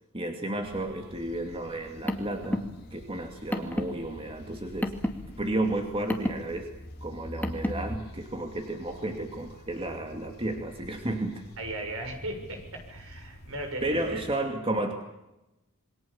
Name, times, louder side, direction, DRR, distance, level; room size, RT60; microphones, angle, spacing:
voice 1, 0.1-4.9 5.4-6.7 7.0-11.4 13.8-14.9, right 1 dB, 25° right, 4 dB, 2.4 m, -32 dB
sound 1, 0.6-14.3, equal, 45° left, 3.4 m, -50 dB
Car, 1.7-8.0, equal, 10° left, 2.3 m, -34 dB
voice 2, 11.6-14.2, right 1 dB, 65° right, 4 dB, 7.0 m, -37 dB
27.5 x 23.0 x 7.2 m, 0.96 s
head